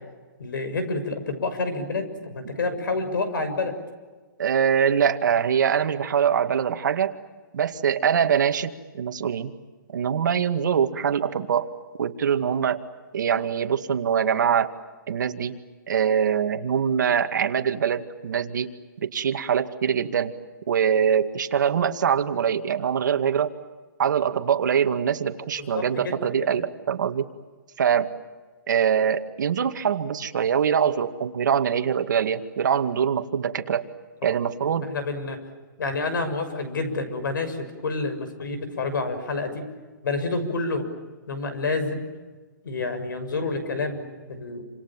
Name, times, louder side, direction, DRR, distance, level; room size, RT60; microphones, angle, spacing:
voice 1, 0.4-3.7 25.6-26.1 26.4-26.5 34.6-35.4 35.8-39.7 40.0-40.9 41.3-42.0 42.6-44.6, left 3 dB, 75° left, 10 dB, 6.7 m, -28 dB
voice 2, 4.4-7.1 7.5-9.5 9.9-11.7 12.0-12.8 13.1-14.7 15.1-15.6 15.9-18.7 19.0-20.3 20.7-23.5 24.0-27.3 27.8-28.1 28.7-33.8 34.2-34.9, right 8 dB, 65° right, 7 dB, 2.1 m, -23 dB
28.5 x 27.0 x 7.5 m, 1.4 s
hypercardioid pair, 170°, 11 cm